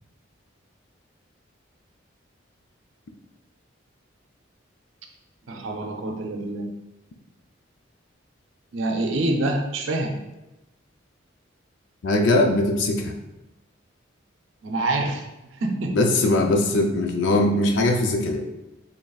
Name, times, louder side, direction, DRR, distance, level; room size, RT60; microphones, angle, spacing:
voice 1, 5.5-6.7 8.7-10.2 14.6-15.2 15.5-16.0, right 2 dB, 75° right, 3 dB, 0.5 m, -26 dB
voice 2, 12.0-13.1 15.9-18.4, left 2 dB, 70° left, 3 dB, 0.5 m, -21 dB
4.0 x 3.4 x 2.3 m, 0.98 s
head